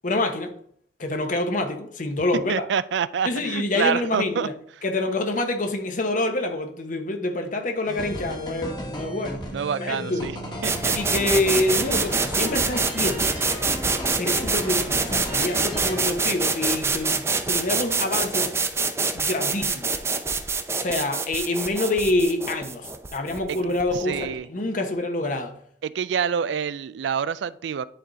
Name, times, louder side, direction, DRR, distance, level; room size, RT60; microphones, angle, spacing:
voice 1, 0.0-0.5 1.0-2.7 3.2-4.5 4.8-9.4 9.8-10.3 10.9-13.3 14.1-18.5 19.1-19.9 20.8-25.5, left 2 dB, 45° left, 1.0 m, -26 dB
voice 2, 2.5-4.5 9.5-10.3 10.6-11.0 24.0-24.5 25.8-27.8, right 7 dB, 75° right, 0.3 m, -27 dB
sound 1, 7.9-16.1, equal, 25° left, 1.4 m, -35 dB
sound 2, 10.6-24.3, right 4 dB, 15° right, 0.6 m, -26 dB
10.0 x 3.9 x 4.0 m
head